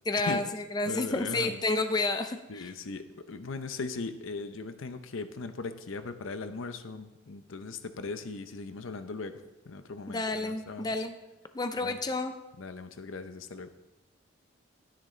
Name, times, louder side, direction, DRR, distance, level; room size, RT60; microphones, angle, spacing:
voice 1, 0.1-0.4 0.7-2.7 10.1-11.2 11.5-12.3, left 2 dB, 20° left, 8 dB, 0.4 m, -30 dB
voice 2, 0.9-1.6 2.5-11.0 11.8-12.0 12.6-13.7, left 3 dB, 80° left, 10 dB, 0.7 m, -39 dB
11.0 x 10.0 x 3.2 m, 1.0 s
head